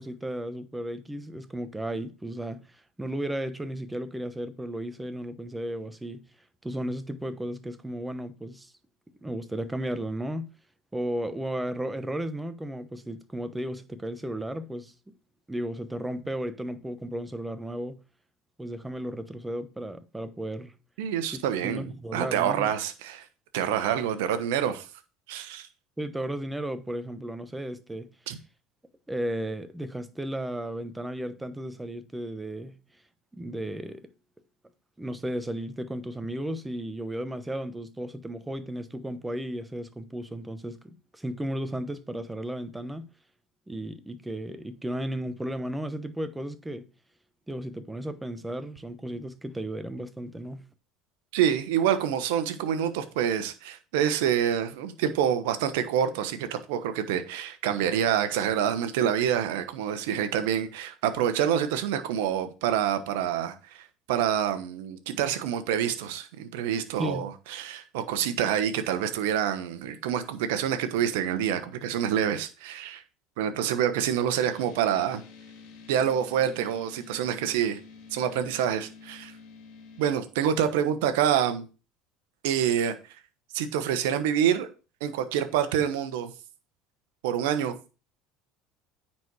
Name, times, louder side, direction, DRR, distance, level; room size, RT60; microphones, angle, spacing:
voice 1, 0.0-2.6 3.0-6.2 6.6-8.7 9.2-10.5 10.9-14.9 15.5-18.0 18.6-20.7 21.2-22.7 26.0-28.1 29.1-32.8 33.3-34.0 35.0-43.1 43.7-46.9 47.5-50.7 67.0-67.3, right 1 dB, 10° right, 1.0 m, -34 dB
voice 2, 21.0-23.2 23.5-24.9 25.3-25.7 28.3-28.4 51.3-73.0 73.4-75.2 75.9-77.8 78.1-79.3 80.0-81.7 82.4-82.9 83.5-84.7 85.0-86.3 87.2-87.8, right 9 dB, 75° right, 1.1 m, -27 dB
sound 1, 74.4-80.1, left 5 dB, 65° left, 2.3 m, -49 dB
9.4 x 4.3 x 4.7 m
hypercardioid pair, 80°, 0 cm